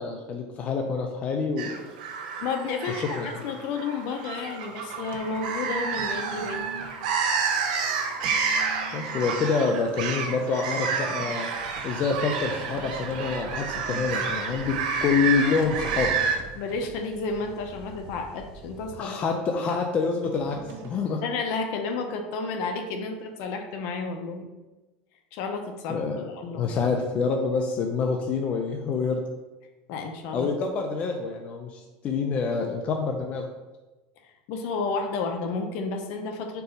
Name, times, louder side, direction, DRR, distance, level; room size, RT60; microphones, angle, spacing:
voice 1, 0.0-1.9 2.9-3.3 8.9-11.5 11.8-14.8 15.0-16.2 19.0-20.6 20.8-21.2 25.9-26.2 26.5-29.2 30.3-33.5, left 5 dB, 30° left, 2 dB, 0.5 m, -27 dB
sound 1, 1.6-16.4, right 5 dB, 90° right, 0.9 m, -30 dB
voice 2, 2.4-6.7 13.9-14.0 16.5-19.2 19.5-19.6 21.2-24.5 25.3-26.0 26.3-26.7 29.9-30.5 34.5-36.6, left 4 dB, 60° left, 5 dB, 0.8 m, -31 dB
sound 2, 4.6-21.1, right 4 dB, 55° right, 0.8 m, -47 dB
sound 3, 11.5-19.0, right 2 dB, 15° right, 1.7 m, -45 dB
4.6 x 4.0 x 5.2 m, 1.1 s
supercardioid pair, 150°, 4 cm